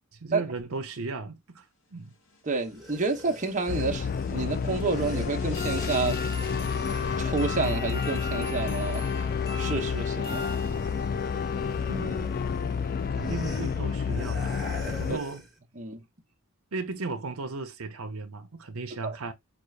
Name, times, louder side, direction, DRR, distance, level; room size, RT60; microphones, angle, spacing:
voice 1, 0.1-1.6 1.9-2.1 11.9-12.3 13.1-14.6 15.0-15.4 16.7-19.3, right 3 dB, 70° right, 0.8 m, -36 dB
sound 1, 2.3-11.3, left 2 dB, 60° left, 1.2 m, -41 dB
voice 2, 2.4-6.2 7.2-9.1 9.6-10.5 15.1-15.2 15.8-16.0 19.0-19.2, right 3 dB, 35° right, 0.9 m, -29 dB
sound 2, 2.6-8.8 9.1-15.6, left 1 dB, ahead, 1.5 m, -46 dB
sound 3, 3.7-15.2, left 6 dB, 40° left, 0.3 m, -30 dB
5.3 x 2.4 x 3.3 m
head